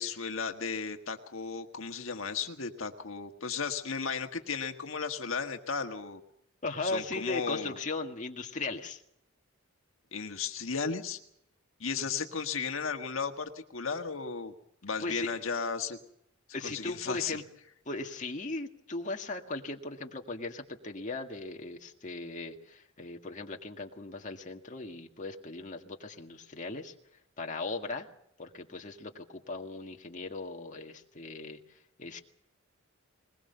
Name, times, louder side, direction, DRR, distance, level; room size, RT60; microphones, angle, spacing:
voice 1, 0.0-6.2 6.8-7.8 10.1-11.2 11.8-14.5 14.8-16.0 16.6-17.4, left 5 dB, 75° left, 5 dB, 1.6 m, -35 dB
voice 2, 6.6-9.0 12.0-12.1 15.0-15.3 16.5-17.4 17.9-26.9 27.4-28.1 28.4-32.2, left 3 dB, 40° left, 3 dB, 1.9 m, -38 dB
21.0 x 21.0 x 6.8 m, 0.75 s
head